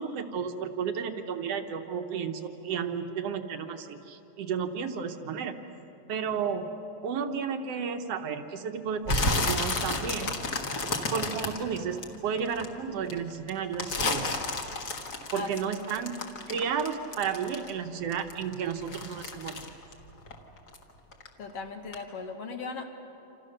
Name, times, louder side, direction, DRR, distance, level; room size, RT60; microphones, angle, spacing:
voice 1, 0.0-5.6 6.1-6.7 7.0-10.3 11.1-14.4 15.3-16.2 16.5-19.6, right 6 dB, 65° right, 6 dB, 1.9 m, -32 dB
sound 1, 9.0-12.6 13.1-17.8 18.1-20.8 21.1-21.5 21.9-22.0, left 2 dB, 35° left, 2.0 m, -31 dB
voice 2, 21.4-22.9, left 4 dB, 60° left, 4 dB, 2.4 m, -37 dB
27.5 x 27.5 x 6.6 m, 3.0 s
omnidirectional pair, 3.5 m